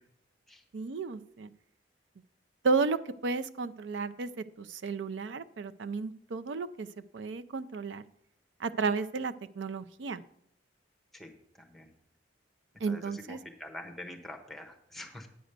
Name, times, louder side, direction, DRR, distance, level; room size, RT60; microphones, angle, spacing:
voice 1, 0.7-1.5 2.6-6.9 7.1-8.1 8.6-10.2 12.8-13.4, right 4 dB, 85° right, 11 dB, 0.5 m, -33 dB
voice 2, 13.3-15.3, left 1 dB, ahead, 3 dB, 1.1 m, -45 dB
9.0 x 5.1 x 6.6 m, 0.71 s
head